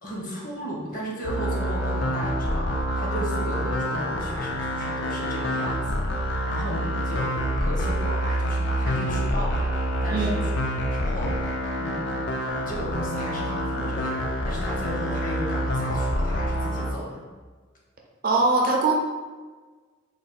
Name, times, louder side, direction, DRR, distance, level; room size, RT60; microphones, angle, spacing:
voice 1, 0.0-9.6 10.0-10.5 10.9-12.1 12.5-17.3, equal, 40° left, -3 dB, 0.8 m, -35 dB
sound 1, 1.2-16.9, equal, 60° left, 0.4 m, -27 dB
voice 2, 10.1-10.4 18.2-18.9, right 3 dB, 45° right, 0 dB, 0.5 m, -21 dB
3.2 x 2.1 x 4.1 m, 1.4 s
head